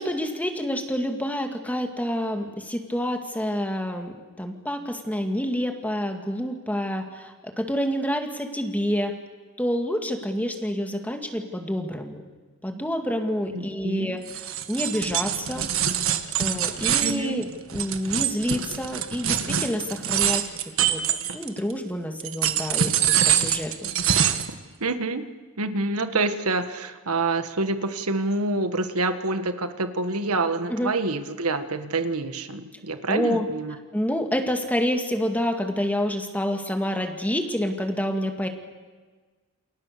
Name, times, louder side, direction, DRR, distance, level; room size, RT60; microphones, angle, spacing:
voice 1, 0.0-9.2 9.6-12.2 12.6-15.7 16.4-17.5 17.7-20.5 20.8-21.0 21.3-23.9 30.7-30.9 33.1-33.5 33.9-38.5, equal, 5° left, 4 dB, 2.2 m, -28 dB
voice 2, 13.5-14.2 17.0-17.4 24.8-25.3 25.6-33.7, right 3 dB, 85° right, 9 dB, 1.6 m, -27 dB
sound 1, 14.3-21.7 22.2-24.5, right 9 dB, 65° right, 1.6 m, -24 dB
29.5 x 27.0 x 6.8 m, 1.4 s
head